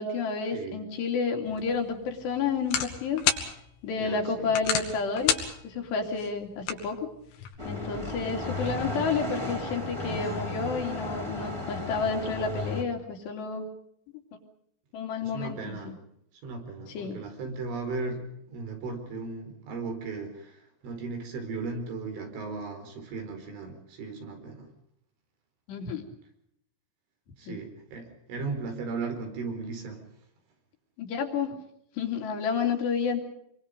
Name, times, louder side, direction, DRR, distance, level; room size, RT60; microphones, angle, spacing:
voice 1, 0.0-3.2 3.8-5.4 5.6-7.1 7.7-13.7 14.9-15.9 16.9-17.2 25.7-26.1 27.5-27.6 31.0-31.6 32.0-33.2, left 5 dB, 65° left, 3 dB, 4.6 m, -30 dB
sound 1, 1.5-7.5, left 8 dB, 85° left, 4.9 m, -33 dB
voice 2, 4.0-4.5 15.2-15.9 16.4-24.7 27.4-30.0, right 4 dB, 75° right, 5 dB, 7.1 m, -36 dB
sound 2, 7.6-12.8, left 2 dB, 5° right, 2.8 m, -34 dB
27.0 x 23.5 x 5.3 m, 0.74 s
omnidirectional pair, 5.5 m